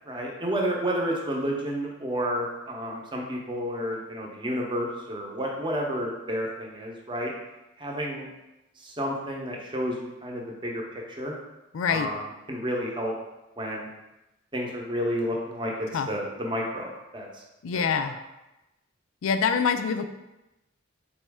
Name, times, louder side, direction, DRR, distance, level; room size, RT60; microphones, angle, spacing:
voice 1, 0.1-7.3 7.8-8.3 8.8-10.8 11.2-11.4 11.9-12.2 12.5-13.1 13.6-13.9 14.5-15.7 16.1-17.4, equal, 25° right, -1 dB, 0.7 m, -30 dB
voice 2, 11.7-12.1 15.9-16.1 17.6-18.2 19.2-20.1, left 6 dB, 80° left, 8 dB, 0.4 m, -25 dB
4.2 x 3.0 x 3.5 m, 0.96 s
head